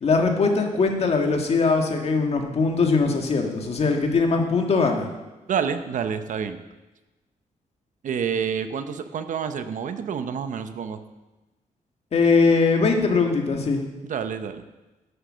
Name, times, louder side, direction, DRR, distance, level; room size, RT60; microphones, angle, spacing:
voice 1, 0.0-5.1 12.1-13.8, left 4 dB, 50° left, 3 dB, 1.7 m, -21 dB
voice 2, 5.5-6.6 8.0-11.0 14.0-14.6, right 7 dB, 70° right, 9 dB, 0.8 m, -28 dB
10.5 x 8.2 x 6.3 m, 1.1 s
wide cardioid pair, 140°, 14 cm